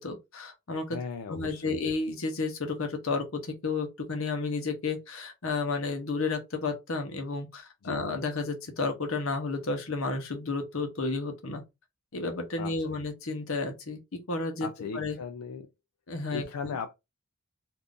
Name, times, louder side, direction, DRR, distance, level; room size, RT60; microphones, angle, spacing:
voice 1, 0.0-1.0 1.3-11.6 12.1-14.7 14.9-15.2 16.1-16.8, left 3 dB, 65° left, 0.8 m, -32 dB
voice 2, 0.9-1.8 7.8-8.0 12.6-12.7 14.6-15.7 16.3-16.9, left 5 dB, 85° left, 0.4 m, -37 dB
2.5 x 2.5 x 3.6 m
head